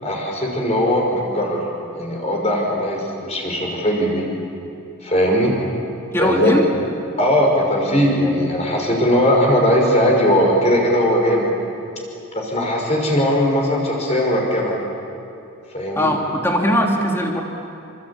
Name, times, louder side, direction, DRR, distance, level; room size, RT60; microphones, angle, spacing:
voice 1, 0.0-1.6 1.9-4.2 5.0-5.5 6.2-6.5 7.2-11.5 12.3-14.7 15.7-16.1, equal, 30° left, -1 dB, 5.6 m, -19 dB
voice 2, 6.1-6.6 15.9-17.4, equal, 10° left, 0 dB, 2.9 m, -19 dB
26.5 x 25.5 x 8.7 m, 2.7 s
head